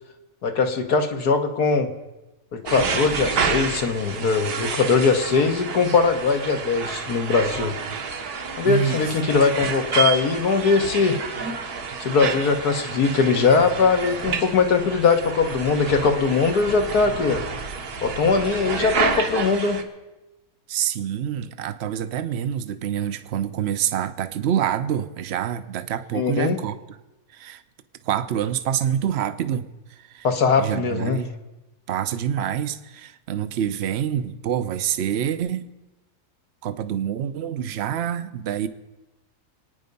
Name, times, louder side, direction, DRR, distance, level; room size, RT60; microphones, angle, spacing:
voice 1, 0.4-1.9 2.5-7.8 8.6-11.2 12.0-17.4 18.0-19.8 26.1-26.6 30.2-31.2, left 4 dB, 75° left, 5 dB, 1.9 m, -21 dB
sound 1, 2.7-19.8, right 5 dB, 75° right, 1.8 m, -29 dB
voice 2, 8.6-9.1 20.7-26.8 27.3-27.6 28.0-30.3 30.6-31.3 31.9-35.7 36.6-38.7, right 9 dB, 55° right, 12 dB, 0.8 m, -26 dB
25.0 x 9.6 x 5.4 m, 1.0 s
omnidirectional pair, 1.7 m